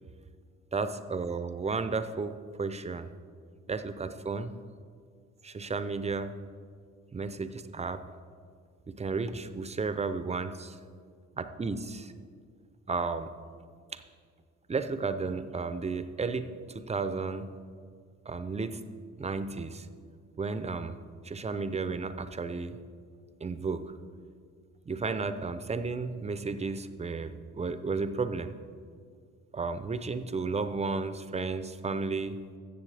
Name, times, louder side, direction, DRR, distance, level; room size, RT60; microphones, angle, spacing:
voice 1, 0.7-3.1 3.7-4.5 5.4-6.3 7.1-8.0 8.9-10.8 11.4-12.1 12.9-13.3 13.9-14.0 14.7-17.5 18.3-18.8 19.2-19.9 20.4-21.0 21.2-22.7 23.4-23.8 24.9-28.5 29.5-32.4, right 4 dB, 20° right, 11 dB, 0.5 m, -33 dB
15.0 x 6.9 x 3.3 m, 2.1 s
cardioid pair, 90°, 30 cm